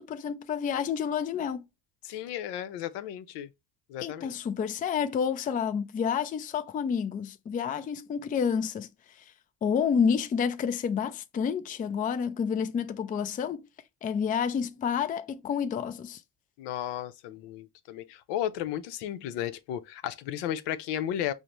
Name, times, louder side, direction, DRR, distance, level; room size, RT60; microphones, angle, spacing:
voice 1, 0.0-1.7 4.0-8.9 9.6-13.6 14.0-16.2, left 7 dB, 20° left, 0.3 m, -29 dB
voice 2, 2.0-3.5 3.9-4.3 16.6-21.3, left 11 dB, 80° left, 0.6 m, -34 dB
5.0 x 2.1 x 2.9 m
supercardioid pair, 85°, 42 cm